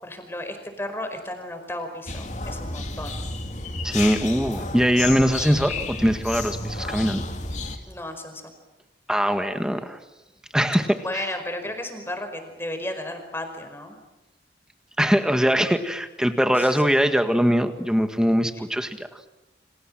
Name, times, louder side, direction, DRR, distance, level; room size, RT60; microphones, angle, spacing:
voice 1, 0.0-3.2 7.9-8.4 11.0-14.0 16.5-16.8, left 1 dB, 15° left, 6 dB, 4.9 m, -34 dB
sound 1, 2.1-7.8, left 3 dB, 40° left, 2.7 m, -31 dB
voice 2, 3.8-7.2 9.1-10.0 10.5-11.2 15.0-19.3, equal, 5° right, 8 dB, 1.8 m, -22 dB
30.0 x 26.5 x 7.6 m, 0.98 s
head